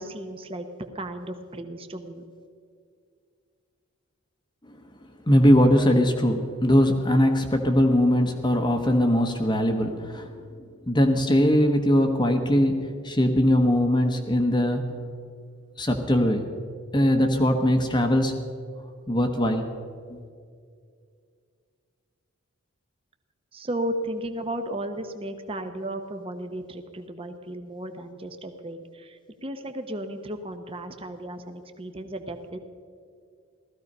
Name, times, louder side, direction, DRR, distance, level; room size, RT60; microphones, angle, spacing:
voice 1, 0.0-2.2 23.5-32.6, right 1 dB, 25° right, 7 dB, 0.9 m, -34 dB
voice 2, 5.3-10.3 10.9-14.8 15.8-16.4 16.9-18.4 19.1-19.7 20.1-20.2, equal, 20° left, 4 dB, 1.0 m, -21 dB
16.5 x 14.0 x 5.4 m, 2.2 s
head